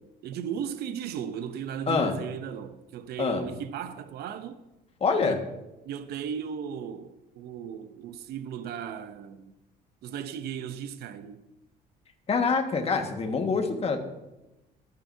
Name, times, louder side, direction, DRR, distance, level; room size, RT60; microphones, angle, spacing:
voice 1, 0.0-4.6 5.2-5.5 5.8-9.5 10.0-11.4, right 8 dB, 70° right, 0.8 m, -36 dB
voice 2, 5.0-5.4 12.3-14.0, left 4 dB, 35° left, 1.7 m, -25 dB
21.0 x 9.5 x 2.8 m
cardioid pair, 110°, 17 cm